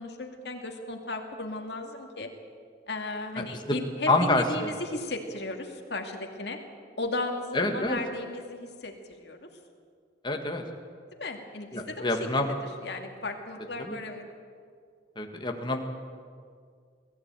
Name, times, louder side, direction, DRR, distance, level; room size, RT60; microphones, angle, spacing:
voice 1, 0.0-2.3 2.9-6.6 7.0-9.5 11.2-12.5 12.8-14.2, left 2 dB, 60° left, 3 dB, 2.3 m, -35 dB
voice 2, 4.1-4.7 7.5-8.0 10.2-10.6 11.7-12.5 13.8-14.0 15.2-15.8, left 2 dB, 25° left, 4 dB, 1.7 m, -27 dB
21.5 x 15.0 x 9.0 m, 2.1 s
head